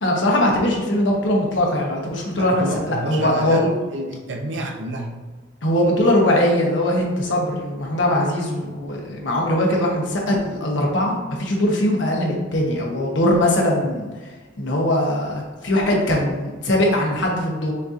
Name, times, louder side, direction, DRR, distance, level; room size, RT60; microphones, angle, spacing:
voice 1, 0.0-3.7 5.6-17.7, left 1 dB, 70° left, -1 dB, 1.0 m, -21 dB
voice 2, 2.4-5.2, right 1 dB, 65° right, 2 dB, 0.6 m, -29 dB
6.4 x 2.7 x 2.5 m, 1.4 s
head